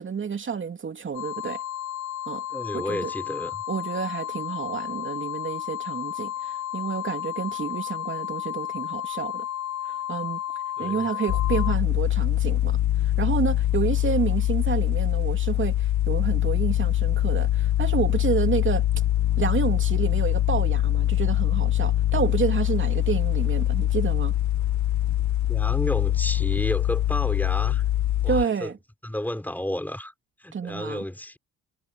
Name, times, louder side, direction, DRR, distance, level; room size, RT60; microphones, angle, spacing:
voice 1, 0.0-1.6 2.3-2.4 2.7-3.1 3.7-9.4 9.8-10.4 10.8-12.8 13.0-18.8 19.4-24.3 28.3-28.8 30.5-31.0, right 6 dB, 40° right, 2.9 m, -29 dB
sound 1, 1.1-11.8, left 11 dB, 85° left, 2.5 m, -33 dB
voice 2, 2.5-3.6 10.8-11.1 25.5-27.8 28.2-28.7 29.0-30.1 30.4-31.4, left 1 dB, 5° left, 4.3 m, -31 dB
sound 2, 11.3-28.4, left 13 dB, 70° left, 1.1 m, -23 dB
cardioid pair, 90°, 30 cm